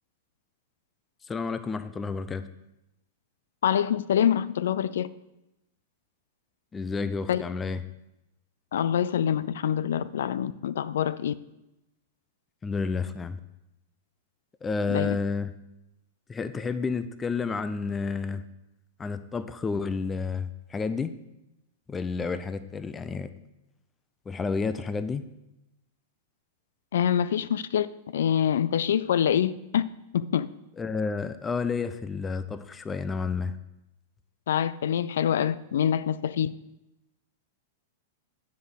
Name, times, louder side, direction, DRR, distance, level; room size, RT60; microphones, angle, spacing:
voice 1, 1.3-2.5 6.7-7.8 12.6-13.4 14.6-15.5 16.3-18.4 19.0-21.1 21.9-23.3 24.3-25.2 30.8-33.6, left 4 dB, 15° left, 12 dB, 0.4 m, -30 dB
voice 2, 3.6-5.1 7.3-7.4 8.7-11.3 14.9-15.2 26.9-27.9 28.1-29.8 30.1-30.5 34.5-36.5, left 9 dB, 80° left, 16 dB, 0.3 m, -25 dB
7.8 x 5.2 x 6.4 m, 0.91 s
supercardioid pair, 145°, 0 cm